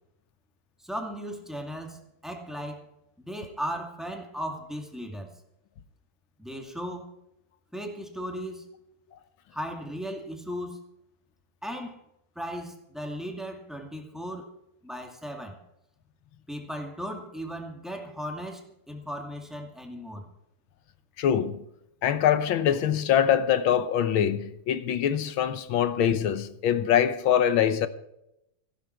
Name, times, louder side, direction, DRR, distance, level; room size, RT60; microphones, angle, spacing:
voice 1, 0.8-2.8 3.2-5.3 6.4-7.1 7.7-8.7 9.5-10.8 11.6-12.0 12.4-14.5 14.8-15.6 16.5-20.2, equal, ahead, 1.9 m, -36 dB
voice 2, 21.2-21.6 22.0-27.9, left 9 dB, 70° left, 1.6 m, -24 dB
15.5 x 12.0 x 4.5 m
omnidirectional pair, 2.4 m